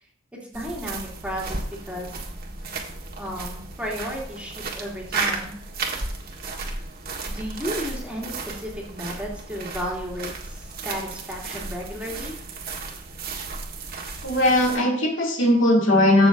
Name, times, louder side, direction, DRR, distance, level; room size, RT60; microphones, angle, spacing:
voice 1, 0.5-2.2 3.2-5.6 7.3-12.3, equal, 5° right, -4 dB, 2.8 m, -33 dB
sound 1, 0.5-14.8, right 3 dB, 50° right, 1.6 m, -34 dB
voice 2, 14.2-16.3, left 1 dB, 75° left, -1 dB, 2.6 m, -19 dB
15.0 x 6.4 x 2.6 m, 0.65 s
head